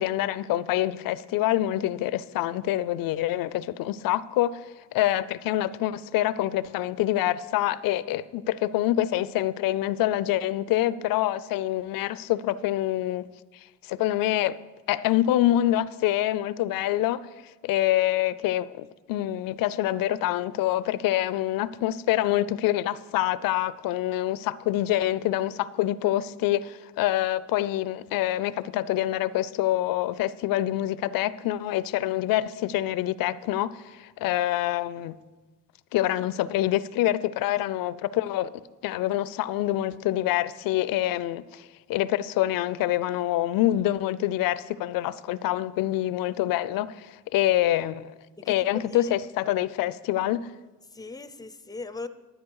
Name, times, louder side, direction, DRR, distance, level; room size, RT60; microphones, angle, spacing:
voice 1, 0.0-4.7 4.9-13.3 13.8-14.6 14.9-17.3 17.6-35.2 35.9-38.5 38.8-48.0 48.5-50.5, left 14 dB, 70° left, 0.6 m, -26 dB
voice 2, 48.4-49.1 50.9-52.1, left 3 dB, 10° left, 0.6 m, -39 dB
11.0 x 9.9 x 4.7 m
supercardioid pair, 85°, 36 cm